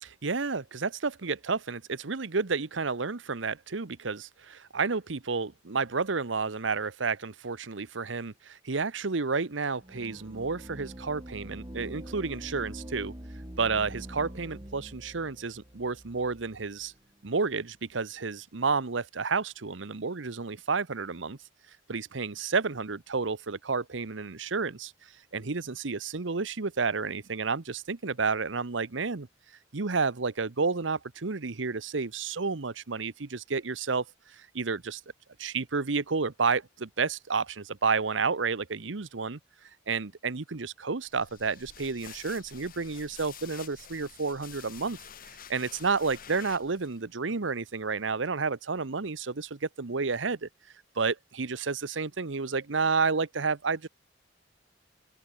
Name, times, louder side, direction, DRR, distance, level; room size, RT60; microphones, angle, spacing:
voice 1, 0.0-13.1 13.6-16.9 17.2-21.4 21.9-29.3 29.7-35.0 35.4-45.0 45.5-50.5 51.0-53.9, right 4 dB, 75° right, 1.0 m, -31 dB
sound 1, 9.8-17.0, equal, 25° right, 2.4 m, -44 dB
sound 2, 41.1-47.0, left 9 dB, 50° left, 1.0 m, -49 dB
open air
head